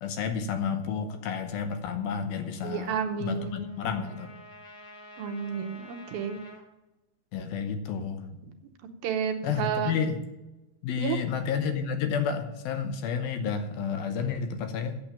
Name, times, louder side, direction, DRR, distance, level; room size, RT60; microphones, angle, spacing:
voice 1, 0.0-4.3 7.3-8.3 9.4-10.2 10.8-15.0, left 6 dB, 75° left, 7 dB, 2.6 m, -31 dB
Trumpet, 2.3-6.6, left 1 dB, 55° left, 1.4 m, -50 dB
voice 2, 2.6-3.7 5.2-6.4 9.0-10.0 11.0-11.2, right 7 dB, 75° right, 4 dB, 2.4 m, -31 dB
8.8 x 7.8 x 8.8 m, 0.98 s
omnidirectional pair, 4.7 m